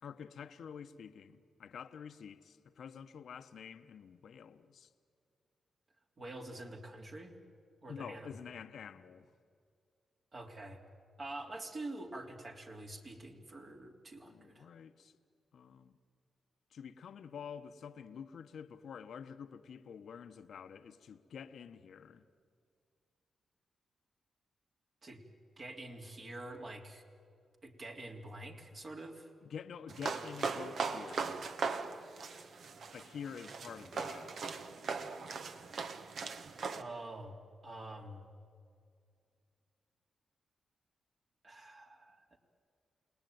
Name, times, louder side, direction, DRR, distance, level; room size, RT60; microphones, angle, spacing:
voice 1, 0.0-4.9 7.9-9.3 14.2-15.1 15.5-15.9 16.7-22.2 29.4-31.4 32.9-34.3 34.9-35.2, left 7 dB, 75° left, 0.9 m, -48 dB
voice 2, 6.2-7.4 7.8-8.4 10.3-10.8 11.2-14.7 25.0-25.2 25.6-27.0 27.6-29.3 36.7-38.3 41.4-42.4, right 2 dB, 50° right, 3.3 m, -46 dB
sound 1, 29.9-36.8, right 4 dB, 70° right, 1.4 m, -39 dB
29.5 x 19.5 x 9.3 m
cardioid pair, 65°, 0 cm